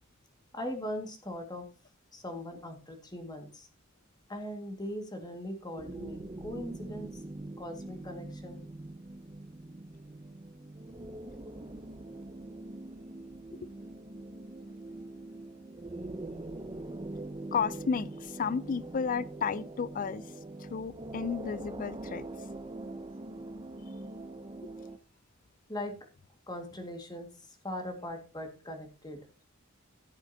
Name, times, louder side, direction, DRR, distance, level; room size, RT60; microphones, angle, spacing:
voice 1, 0.5-1.7 2.1-3.7 4.3-8.6 25.7-26.0 26.5-29.2, left 1 dB, 20° left, 1.9 m, -40 dB
sound 1, 5.8-25.0, right 2 dB, 25° right, 0.6 m, -43 dB
voice 2, 17.5-20.2 20.6-22.2, left 6 dB, 40° left, 0.4 m, -33 dB
15.5 x 7.9 x 2.8 m
head